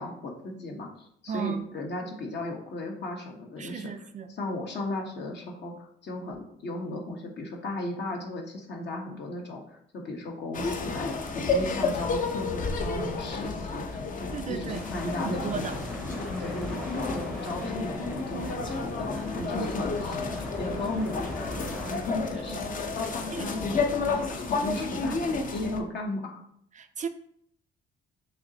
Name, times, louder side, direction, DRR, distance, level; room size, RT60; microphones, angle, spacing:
voice 1, 0.0-3.9 4.3-15.8 16.4-22.6 22.9-26.4, left 2 dB, 60° left, 1.1 m, -36 dB
voice 2, 1.3-1.7 3.6-4.3 14.3-14.8 15.4-15.8 22.5-22.8 23.3-23.5 26.7-27.1, right 7 dB, 40° right, 0.4 m, -35 dB
sound 1, 10.5-25.8, left 4 dB, 40° left, 0.6 m, -31 dB
sound 2, 14.7-22.0, equal, 5° left, 0.7 m, -40 dB
5.6 x 3.0 x 2.8 m
cardioid pair, 90°, 20 cm